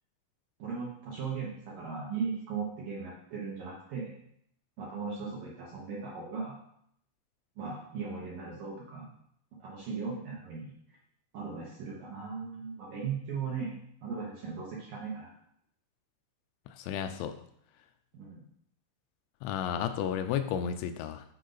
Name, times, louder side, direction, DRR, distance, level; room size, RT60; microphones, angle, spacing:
voice 1, 0.6-4.1 4.8-6.6 7.6-9.1 9.6-10.7 11.3-13.7 14.0-15.3 18.1-18.4, right 5 dB, 70° right, -5 dB, 2.2 m, -37 dB
voice 2, 16.7-17.3 19.4-21.2, left 9 dB, 85° left, 8 dB, 2.9 m, -32 dB
9.0 x 5.2 x 4.0 m, 0.70 s
omnidirectional pair, 5.4 m